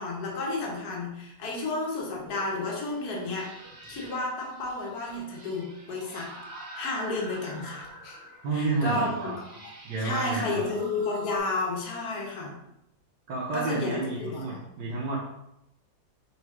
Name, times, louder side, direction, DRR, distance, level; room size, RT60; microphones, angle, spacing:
voice 1, 0.0-3.5 3.9-6.3 6.7-8.2 8.5-9.1 10.0-12.6 13.5-14.5, left 2 dB, 60° left, -2 dB, 1.8 m, -31 dB
sound 1, 2.3-11.4, equal, 40° right, 2.5 m, -47 dB
voice 2, 8.4-9.3 9.8-10.7 13.3-15.2, right 3 dB, 75° right, -5 dB, 1.8 m, -30 dB
6.4 x 3.2 x 4.7 m, 0.84 s
omnidirectional pair, 2.0 m